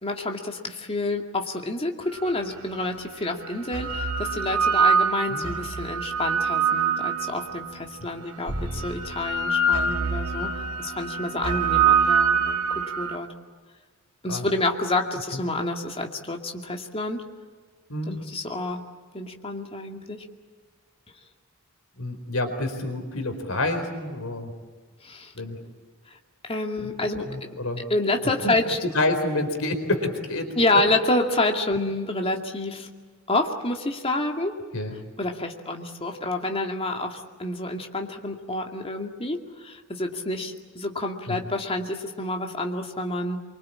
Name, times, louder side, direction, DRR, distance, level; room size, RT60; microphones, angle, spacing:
voice 1, 0.0-10.5 10.8-13.3 14.2-17.2 18.1-18.8 19.1-20.2 25.0-25.3 26.4-28.8 30.5-32.9 33.3-34.6 35.2-43.4, left 2 dB, 25° left, 3 dB, 2.3 m, -28 dB
sound 1, 2.4-2.5 3.5-7.7 8.5-13.2, right 5 dB, 80° right, 1.8 m, -24 dB
voice 2, 22.0-24.5 25.3-25.6 27.2-27.8 28.4-28.5 28.8-30.5 34.7-34.9 41.3-41.4, left 2 dB, 65° left, 6 dB, 4.2 m, -28 dB
25.0 x 24.5 x 8.7 m, 1.4 s
head